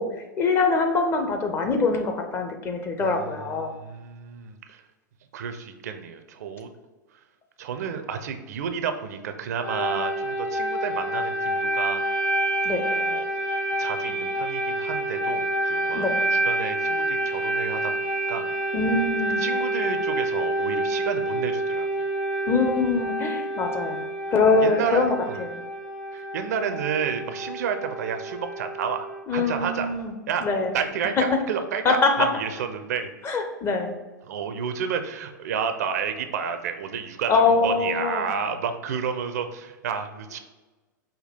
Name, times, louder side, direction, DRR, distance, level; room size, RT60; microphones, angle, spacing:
voice 1, 0.0-3.7 12.6-12.8 15.9-16.2 18.7-19.4 22.5-25.6 29.3-30.1 30.4-30.7 31.2-31.3 31.8-32.3 33.2-33.9 37.3-38.3, left 4 dB, 25° left, 5 dB, 0.6 m, -23 dB
voice 2, 3.0-4.8 5.3-6.7 7.6-12.0 12.8-13.2 13.8-17.9 18.3-18.5 19.4-22.1 24.6-25.4 26.1-29.1 29.3-29.9 30.3-30.5 30.7-33.1 34.2-40.4, right 7 dB, 55° right, 8 dB, 0.5 m, -31 dB
sound 1, 9.6-29.2, right 1 dB, 70° left, 1.4 m, -28 dB
5.0 x 2.2 x 4.2 m, 1.2 s
figure-of-eight pair, 95°, 10 cm